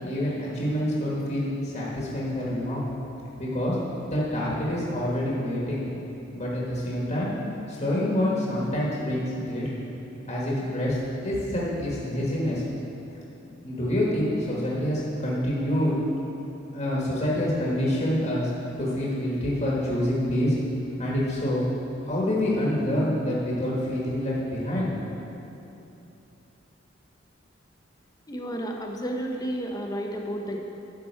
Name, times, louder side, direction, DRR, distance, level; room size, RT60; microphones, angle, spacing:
voice 1, 0.0-2.9 3.4-3.8 4.1-5.9 6.3-7.3 7.7-9.7 10.3-11.0 11.2-12.6 13.6-15.9 16.7-18.5 18.8-20.6 21.0-21.6 22.0-24.9, left 1 dB, 35° left, -5 dB, 1.4 m, -27 dB
voice 2, 28.3-30.6, equal, 20° left, 1 dB, 0.8 m, -31 dB
11.5 x 6.0 x 4.5 m, 2.9 s
head